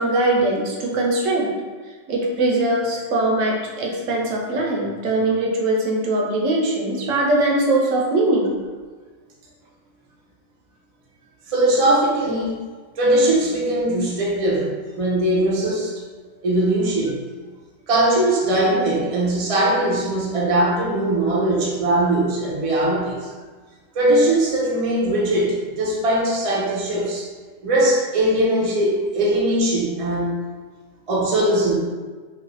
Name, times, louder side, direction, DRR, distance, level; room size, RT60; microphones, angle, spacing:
voice 1, 0.0-1.5 2.1-8.5, right 2 dB, 75° right, -1 dB, 1.0 m, -21 dB
voice 2, 11.5-12.5 13.0-15.9 16.4-17.2 17.9-23.2 23.9-27.3 27.6-30.4 31.1-31.8, right 1 dB, 45° right, -4 dB, 0.4 m, -20 dB
3.1 x 2.5 x 2.6 m, 1.4 s
omnidirectional pair, 1.4 m